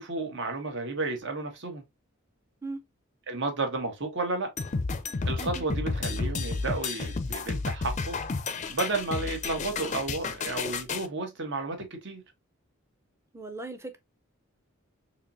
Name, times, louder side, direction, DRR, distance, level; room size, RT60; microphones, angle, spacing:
voice 1, 0.0-1.8 3.3-4.5 5.2-8.2 8.7-12.2, right 3 dB, 60° right, 1.2 m, -32 dB
sound 1, 4.6-11.1, left 4 dB, 35° left, 0.5 m, -31 dB
voice 2, 13.3-14.0, right 3 dB, 15° right, 0.6 m, -38 dB
4.1 x 3.0 x 2.6 m
head